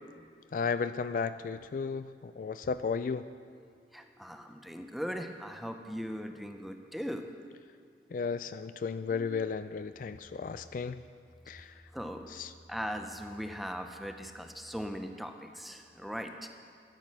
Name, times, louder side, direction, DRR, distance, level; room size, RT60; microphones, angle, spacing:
voice 1, 0.5-3.2 8.1-11.0 11.5-11.7 12.3-12.5, left 5 dB, 50° left, 12 dB, 0.3 m, -34 dB
voice 2, 3.9-7.3 9.1-9.4 11.9-12.4 12.7-16.5, equal, ahead, 5 dB, 0.6 m, -39 dB
12.5 x 10.5 x 6.2 m, 2.2 s
head